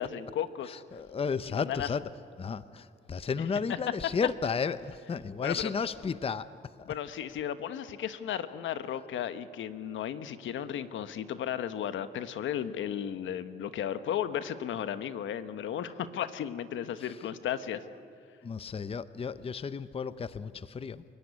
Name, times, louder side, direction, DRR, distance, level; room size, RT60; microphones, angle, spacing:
voice 1, 0.0-0.8 1.5-1.9 5.4-5.7 6.9-17.8, left 9 dB, 75° left, 11 dB, 1.2 m, -34 dB
voice 2, 0.7-2.0 2.4-6.5 6.8-6.9 18.4-21.0, left 5 dB, 30° left, 14 dB, 0.7 m, -33 dB
29.0 x 16.5 x 9.8 m, 2.3 s
cardioid pair, 90°, 20 cm